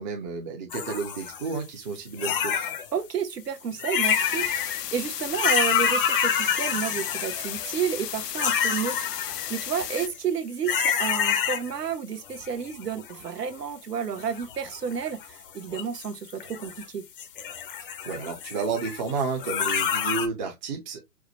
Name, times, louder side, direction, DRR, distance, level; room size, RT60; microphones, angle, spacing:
voice 1, 0.0-2.7 18.0-21.0, right 5 dB, 30° right, 0.7 m, -31 dB
sound 1, 0.7-1.6 2.2-2.9 3.7-4.8 5.2-7.7 8.3-10.2 10.6-11.9 12.3-13.3 14.2-15.3 15.7-16.8 17.2-20.3, left 8 dB, 35° left, 0.6 m, -28 dB
voice 2, 2.9-17.0, right 7 dB, 75° right, 0.9 m, -31 dB
sound 2, 4.0-10.1, left 11 dB, 75° left, 0.6 m, -35 dB
4.7 x 2.1 x 3.0 m
figure-of-eight pair, 125°, 49 cm